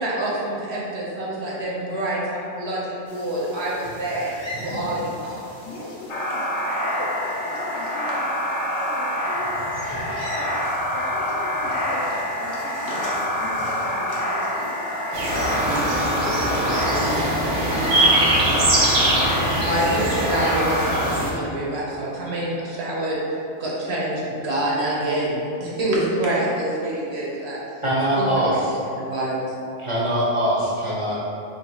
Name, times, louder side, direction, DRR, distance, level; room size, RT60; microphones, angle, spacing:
voice 1, 0.0-4.3 4.6-5.4 19.0-19.3 19.6-23.2 23.6-27.6 28.2-28.4 29.0-29.5, right 1 dB, 60° right, -6 dB, 1.0 m, -26 dB
sound 1, 3.1-20.6, equal, 25° left, 0.9 m, -40 dB
voice 2, 5.6-6.5 6.8-8.3 8.8-10.6 10.9-14.7 15.3-15.7 16.2-17.2 18.4-18.7, left 2 dB, 70° left, -1 dB, 0.8 m, -37 dB
sound 2, 6.1-21.1, equal, 45° left, 0.4 m, -26 dB
sound 3, 15.1-21.3, right 1 dB, 90° right, 1.1 m, -22 dB
voice 3, 27.8-28.8 29.8-31.2, right 1 dB, 30° right, -7 dB, 0.8 m, -22 dB
3.1 x 2.9 x 4.5 m, 2.7 s
omnidirectional pair, 1.3 m